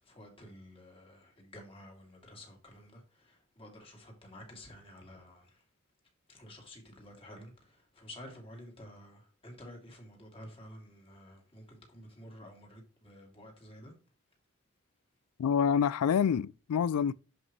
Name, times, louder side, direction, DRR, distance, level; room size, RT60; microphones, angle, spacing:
voice 1, 0.1-3.0 3.3-5.5 6.3-7.5 8.0-13.9, left 1 dB, 25° left, 2.6 m, -51 dB
voice 2, 15.4-17.1, left 7 dB, 80° left, 0.3 m, -27 dB
11.0 x 5.2 x 3.1 m
head